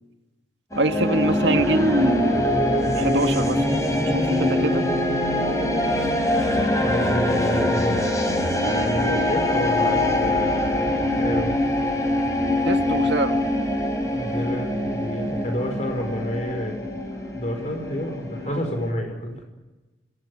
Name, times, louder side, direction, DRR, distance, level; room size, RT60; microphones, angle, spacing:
sound 1, 0.7-18.9, left 1 dB, 15° left, 4.2 m, -23 dB
voice 1, 0.7-2.5 3.0-3.8 4.1-4.9 12.6-13.4 18.5-18.6, right 1 dB, 70° right, 6 dB, 1.8 m, -24 dB
voice 2, 6.8-8.1 8.5-11.6 14.1-16.7 17.3-19.4, equal, 40° left, 4 dB, 5.1 m, -29 dB
26.5 x 18.5 x 9.7 m, 1.2 s
head